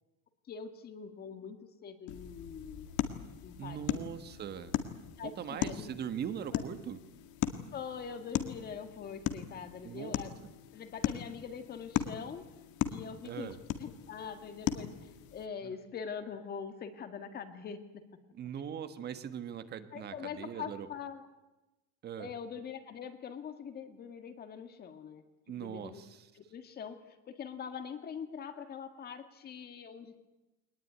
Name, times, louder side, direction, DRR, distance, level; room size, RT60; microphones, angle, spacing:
voice 1, 0.5-2.9 3.4-4.0 5.2-5.9 6.5-6.6 7.7-10.3 10.7-12.5 12.9-18.1 19.9-21.3 22.2-25.2 25.6-26.0 26.3-30.2, left 7 dB, 30° left, 8 dB, 1.8 m, -43 dB
sound 1, 2.1-15.5, left 12 dB, 70° left, 1.9 m, -38 dB
voice 2, 3.6-4.7 5.2-7.0 9.8-10.2 13.2-13.6 15.6-15.7 18.3-20.9 22.0-22.3 25.5-26.3, right 8 dB, 30° right, 11 dB, 1.4 m, -41 dB
23.0 x 20.0 x 9.5 m, 1.0 s
cardioid pair, 180°, 31 cm